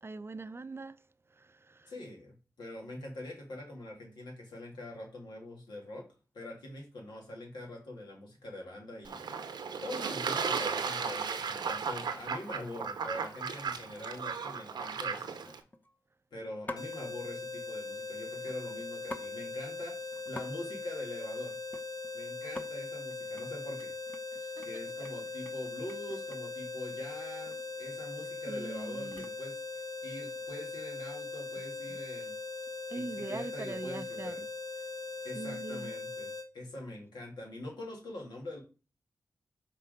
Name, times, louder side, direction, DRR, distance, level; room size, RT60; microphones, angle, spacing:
voice 1, 0.0-1.9 24.4-24.7 25.0-25.1 28.5-29.3 31.9-32.0 32.9-34.5 35.3-36.0, right 3 dB, 35° right, 0.4 m, -42 dB
voice 2, 1.9-6.1 6.3-15.3 16.3-21.6 22.1-23.9 24.6-32.4 32.9-34.4 35.2-38.6, left 1 dB, 90° left, 2.0 m, -44 dB
Fowl / Bird / Water, 9.0-15.6, right 6 dB, 85° right, 0.7 m, -35 dB
sound 1, 12.6-12.8 13.2-13.5 13.9-14.0 14.3-14.7 15.4-16.0 16.7-17.0 18.4-19.3 19.6-19.7 20.0-20.5 20.7-22.1 22.4-22.7 23.1-23.5 23.8-26.6 27.5-27.6 27.9-29.5 30.1-30.5, left 2 dB, 25° left, 0.8 m, -47 dB
sound 2, 16.8-36.5, left 3 dB, 55° left, 1.0 m, -40 dB
5.6 x 3.7 x 5.0 m
cardioid pair, 40°, 7 cm